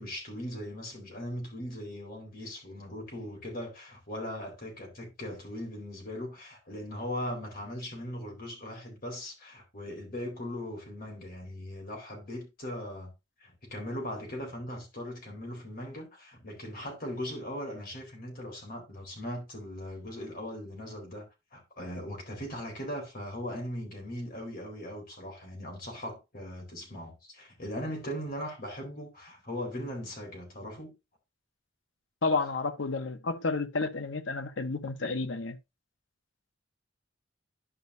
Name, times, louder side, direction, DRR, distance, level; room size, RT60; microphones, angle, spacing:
voice 1, 0.0-13.1 13.4-21.3 21.5-30.9, left 1 dB, 50° left, 4.1 m, -39 dB
voice 2, 32.2-35.6, left 3 dB, 85° left, 1.0 m, -31 dB
11.5 x 5.3 x 2.6 m
head